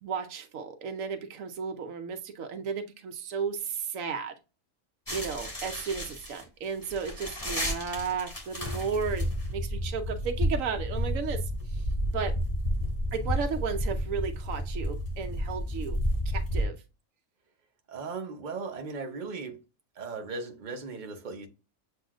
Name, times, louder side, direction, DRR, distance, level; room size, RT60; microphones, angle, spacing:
voice 1, 0.0-4.3 5.1-9.3 9.5-11.4 11.7-11.8 12.1-12.3 13.1-16.0 16.3-16.8, right 6 dB, 85° right, 1.1 m, -34 dB
sound 1, 5.1-16.6, equal, 15° left, 1.9 m, -31 dB
voice 2, 17.9-19.6 20.0-21.5, right 4 dB, 40° right, 0.9 m, -37 dB
7.5 x 2.8 x 2.4 m
omnidirectional pair, 1.3 m